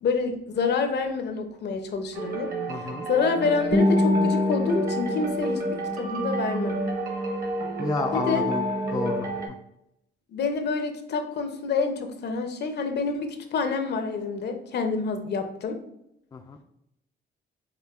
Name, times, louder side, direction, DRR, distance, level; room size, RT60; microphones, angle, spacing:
voice 1, 0.0-2.5 3.1-5.6 5.9-6.8 8.1-8.5 10.3-15.8, left 4 dB, 60° left, 6 dB, 0.6 m, -27 dB
sound 1, 2.1-9.5, right 1 dB, 45° right, 1.1 m, -30 dB
voice 2, 2.7-3.1 7.8-8.6 8.9-9.6 16.3-16.6, left 4 dB, 20° left, 4 dB, 0.3 m, -30 dB
Guitar, 3.7-6.7, left 2 dB, 25° right, 0.6 m, -25 dB
4.9 x 2.4 x 2.4 m, 0.80 s
cardioid pair, 90°, 20 cm